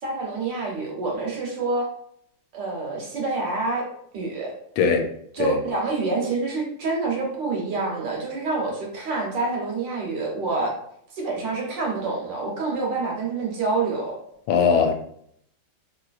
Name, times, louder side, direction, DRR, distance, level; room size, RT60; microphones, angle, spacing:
voice 1, 0.0-1.9 2.5-3.8 4.1-4.5 5.3-10.7 11.1-14.1, right 3 dB, 65° right, -2 dB, 1.3 m, -27 dB
voice 2, 4.8-5.1 5.4-5.6 14.5-14.9, left 6 dB, 80° left, 4 dB, 1.3 m, -20 dB
3.2 x 2.9 x 2.3 m, 0.69 s
omnidirectional pair, 2.3 m